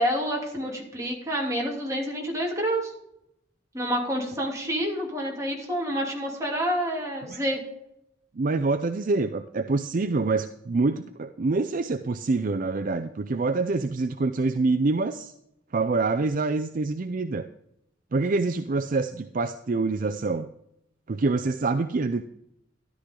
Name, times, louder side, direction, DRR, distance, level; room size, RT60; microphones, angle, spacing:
voice 1, 0.0-2.9 3.7-7.6, equal, 15° right, -2 dB, 2.9 m, -28 dB
voice 2, 8.4-15.3 15.7-17.5 18.1-20.5 21.1-22.2, right 3 dB, 45° right, 10 dB, 0.5 m, -26 dB
13.0 x 11.5 x 3.8 m, 0.80 s
head